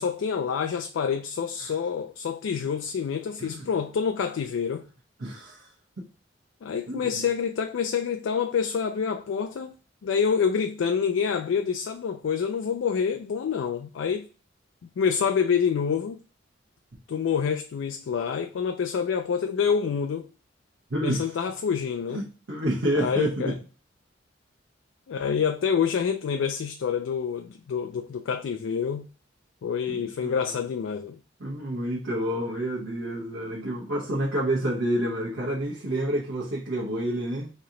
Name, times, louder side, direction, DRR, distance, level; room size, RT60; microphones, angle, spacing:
voice 1, 0.0-4.9 6.6-9.7 10.0-14.3 15.0-16.2 17.1-20.3 21.0-22.3 22.9-23.6 25.1-29.1 29.6-31.2, left 6 dB, 85° left, 0.3 m, -27 dB
voice 2, 5.2-5.7 6.9-7.2 20.9-21.3 22.1-23.5 29.9-30.6 31.4-37.5, right 1 dB, 85° right, 1.0 m, -29 dB
3.2 x 2.8 x 3.7 m
head